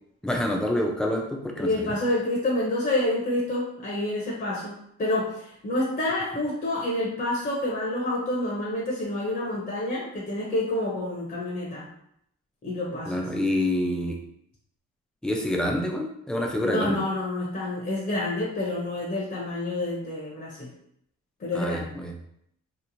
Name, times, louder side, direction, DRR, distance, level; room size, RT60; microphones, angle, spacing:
voice 1, 0.2-1.9 13.1-14.2 15.2-17.0 21.5-22.2, left 1 dB, ahead, 1 dB, 0.4 m, -27 dB
voice 2, 1.6-11.9 12.6-13.3 16.6-20.7 21.4-21.9, left 1 dB, 30° left, -4 dB, 0.7 m, -28 dB
2.9 x 2.0 x 2.6 m, 0.73 s
cardioid pair, 90°, 30 cm